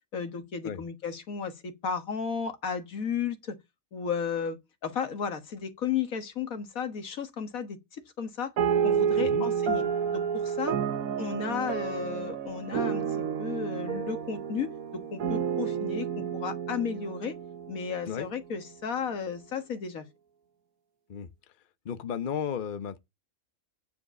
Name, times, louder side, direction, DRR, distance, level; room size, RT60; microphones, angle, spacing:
voice 1, 0.1-3.6 3.9-8.5 8.8-9.8 10.1-10.8 11.2-17.4 17.7-20.1, left 6 dB, 80° left, 1.9 m, -34 dB
sound 1, 8.6-18.3, right 7 dB, 80° right, 1.3 m, -30 dB
voice 2, 21.8-23.0, left 7 dB, 45° left, 0.8 m, -34 dB
9.5 x 5.0 x 6.8 m
omnidirectional pair, 1.4 m